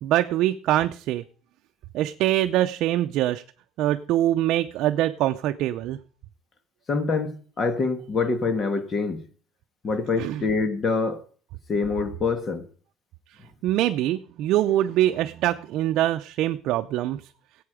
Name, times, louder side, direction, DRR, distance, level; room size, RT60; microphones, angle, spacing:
voice 1, 0.0-1.2 1.9-3.4 3.8-6.0 10.2-10.4 13.6-17.2, right 13 dB, 65° right, 0.6 m, -23 dB
voice 2, 6.9-9.2 9.8-11.2 11.7-12.6, left 4 dB, 30° left, 1.6 m, -25 dB
17.0 x 8.5 x 5.0 m
cardioid pair, 160°, 0 cm